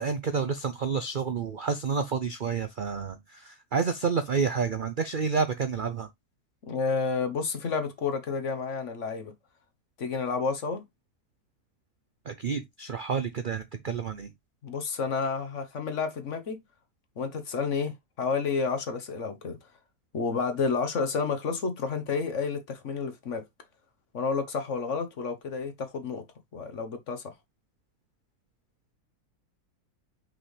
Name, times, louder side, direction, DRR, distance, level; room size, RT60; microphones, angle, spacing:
voice 1, 0.0-6.1 12.3-14.3, right 5 dB, 60° right, 0.5 m, -29 dB
voice 2, 6.7-9.3 10.0-10.8 14.6-16.6 17.2-19.6 20.1-23.4 24.1-26.2 26.5-27.2, left 5 dB, 50° left, 1.5 m, -30 dB
5.8 x 5.3 x 3.2 m
omnidirectional pair, 1.6 m